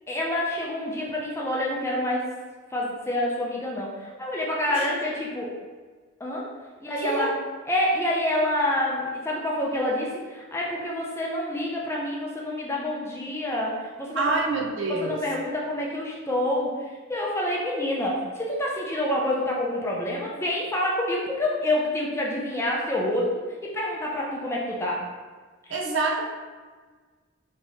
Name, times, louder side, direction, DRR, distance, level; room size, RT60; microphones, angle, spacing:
voice 1, 0.1-2.2 2.7-5.5 6.2-6.5 6.8-7.3 7.7-14.4 14.9-23.3 23.6-25.0, left 1 dB, 10° left, -3 dB, 0.4 m, -27 dB
voice 2, 7.0-7.3 14.1-15.2 25.7-26.2, right 3 dB, 60° right, 0 dB, 0.5 m, -26 dB
3.4 x 2.8 x 2.8 m, 1.4 s
head